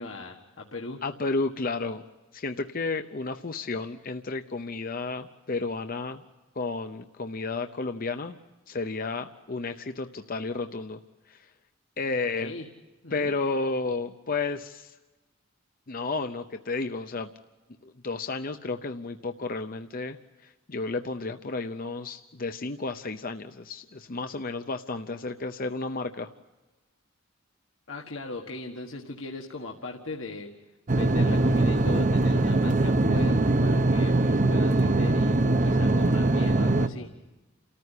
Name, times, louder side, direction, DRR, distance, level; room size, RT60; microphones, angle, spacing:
voice 1, 0.0-1.0 12.4-12.6 13.0-13.3 27.9-30.6 30.9-37.1, left 2 dB, 75° left, 1 dB, 1.6 m, -39 dB
voice 2, 1.0-2.0 2.3-6.2 6.6-8.4 8.7-11.0 11.3-11.5 12.0-12.5 13.1-15.0 15.9-17.3 17.8-20.2 20.4-26.3, left 3 dB, 45° left, 8 dB, 0.7 m, -32 dB
sound 1, 30.9-36.9, right 2 dB, 40° right, 0.8 m, -22 dB
29.5 x 14.0 x 9.9 m, 1.2 s
head